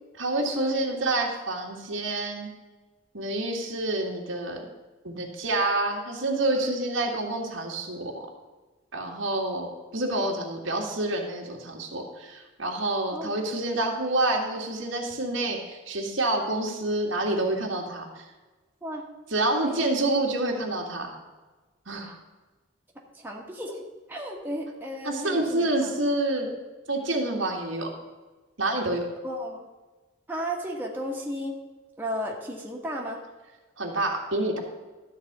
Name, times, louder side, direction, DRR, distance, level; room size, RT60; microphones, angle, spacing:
voice 1, 0.2-2.5 3.1-4.7 5.0-8.3 8.9-18.2 19.3-21.2 21.9-22.1 25.0-26.5 26.9-27.9 28.6-29.1 33.8-34.6, right 2 dB, 85° right, 0 dB, 1.9 m, -28 dB
voice 2, 23.2-23.8 24.1-26.0 29.2-29.6 30.3-31.5 32.0-33.2, equal, 10° right, -2 dB, 1.3 m, -34 dB
12.5 x 4.2 x 7.9 m, 1.2 s
head